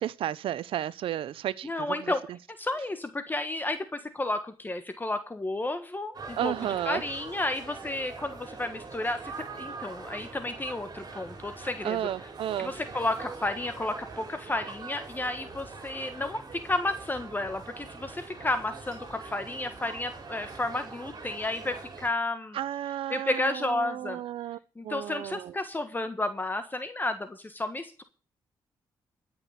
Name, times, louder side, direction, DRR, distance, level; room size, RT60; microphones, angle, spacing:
voice 1, 0.0-2.4 6.4-7.0 11.8-12.7 22.5-25.5, right 11 dB, 80° right, 0.7 m, -33 dB
voice 2, 1.6-2.2 2.6-6.5 6.8-12.0 12.6-22.6 23.1-24.2 24.8-28.0, left 2 dB, 20° left, 1.4 m, -32 dB
sound 1, 6.1-22.1, right 4 dB, 45° right, 4.0 m, -43 dB
13.0 x 6.1 x 8.8 m
cardioid pair, 80°, 9 cm